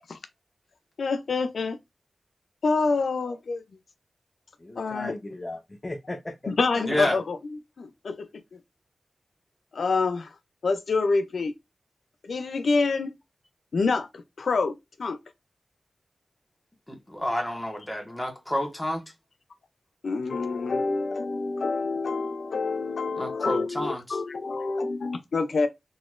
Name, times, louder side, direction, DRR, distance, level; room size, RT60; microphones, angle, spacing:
voice 1, 1.0-1.8 2.6-3.6 4.8-5.1 6.5-7.4 7.8-8.6 9.7-10.3 10.6-11.5 12.2-13.2 13.7-14.1 14.4-15.2 20.0-25.7, left 4 dB, 80° left, 0.4 m, -27 dB
voice 2, 4.6-7.2, left 2 dB, 25° left, 0.6 m, -37 dB
voice 3, 6.9-7.2 16.9-19.0 23.2-24.0, equal, 10° left, 1.3 m, -29 dB
4.0 x 2.9 x 2.4 m
wide cardioid pair, 90°, 0 cm